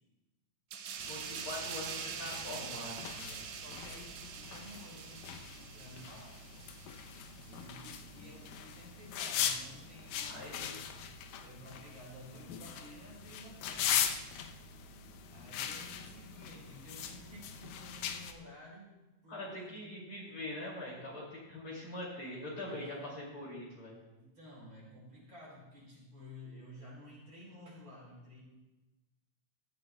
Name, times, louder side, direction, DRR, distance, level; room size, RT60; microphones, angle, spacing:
sound 1, 0.7-7.9 8.2-8.5, right 7 dB, 70° right, 1.8 m, -44 dB
sound 2, 1.0-18.3, left 8 dB, 85° left, 2.4 m, -40 dB
voice 1, 1.1-3.0 10.3-10.8 19.3-24.0, left 1 dB, 45° left, -4 dB, 3.2 m, -43 dB
voice 2, 3.1-6.4 7.5-10.9 11.4-14.1 15.3-19.0 19.2-20.0 20.3-20.4 21.0-21.1 22.6-23.1 24.1-28.4, left 1 dB, 40° right, -5 dB, 5.2 m, -53 dB
16.5 x 13.5 x 2.2 m, 1.1 s
omnidirectional pair, 3.7 m